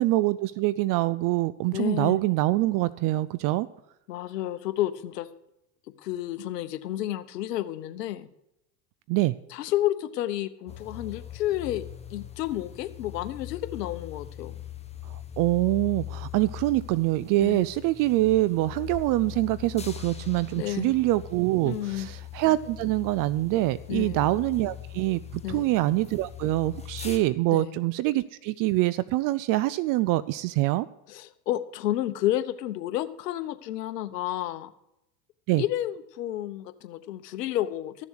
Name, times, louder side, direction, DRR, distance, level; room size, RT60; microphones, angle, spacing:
voice 1, 0.0-3.7 9.1-9.3 15.1-30.9 35.5-35.6, right 17 dB, 45° right, 18 dB, 0.5 m, -25 dB
voice 2, 1.7-2.2 4.1-5.3 6.0-8.3 9.5-11.8 12.1-14.6 17.4-17.6 20.5-20.9 21.6-22.1 23.9-24.2 25.4-25.7 27.5-27.8 31.1-34.7 35.6-38.1, left 13 dB, 85° left, 12 dB, 1.0 m, -31 dB
sound 1, 10.7-27.2, left 11 dB, 15° left, 1.5 m, -41 dB
13.5 x 7.1 x 6.4 m, 0.82 s
supercardioid pair, 105°, 47 cm